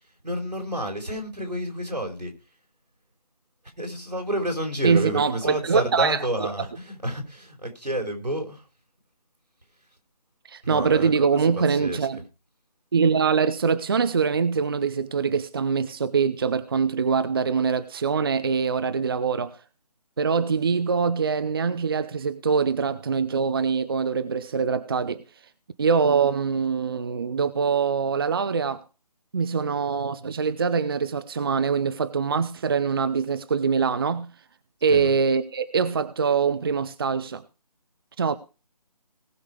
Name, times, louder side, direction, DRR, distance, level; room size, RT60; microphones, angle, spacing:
voice 1, 0.2-2.3 3.8-8.7 10.6-12.1 34.8-35.1, equal, 90° right, 4.8 m, -30 dB
voice 2, 4.8-6.2 10.5-12.2 12.9-19.6 20.2-25.2 25.8-28.8 29.3-34.3 34.8-37.4 38.2-38.3, right 5 dB, 35° right, 0.7 m, -23 dB
19.0 x 6.4 x 4.9 m
figure-of-eight pair, 155°, 21 cm